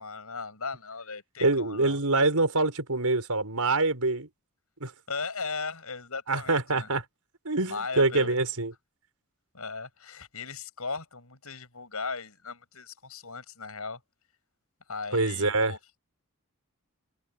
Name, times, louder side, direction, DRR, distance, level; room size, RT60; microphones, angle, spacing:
voice 1, 0.0-2.0 5.1-6.9 7.6-8.4 9.5-14.0 14.9-15.8, left 4 dB, 75° left, 7.7 m, -37 dB
voice 2, 1.4-4.3 4.8-4.9 6.3-7.0 7.4-8.7 15.1-15.7, right 3 dB, 80° right, 5.0 m, -25 dB
head